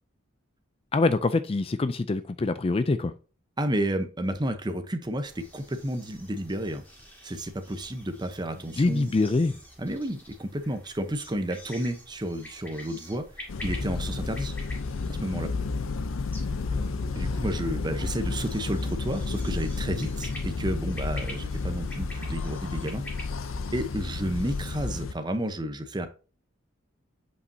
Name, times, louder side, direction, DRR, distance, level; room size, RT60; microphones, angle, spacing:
voice 1, 0.9-3.1 8.8-9.6 16.7-17.0, left 3 dB, 30° left, 0.4 m, -25 dB
voice 2, 3.6-6.8 7.2-9.1 9.8-13.3 13.6-14.5 15.1-15.5 17.1-23.0 23.7-26.1, right 1 dB, 20° right, 0.8 m, -31 dB
sound 1, 5.2-24.8, left 1 dB, 10° left, 2.2 m, -48 dB
sound 2, 13.5-25.1, left 3 dB, 80° left, 0.6 m, -31 dB
8.1 x 5.3 x 2.7 m
head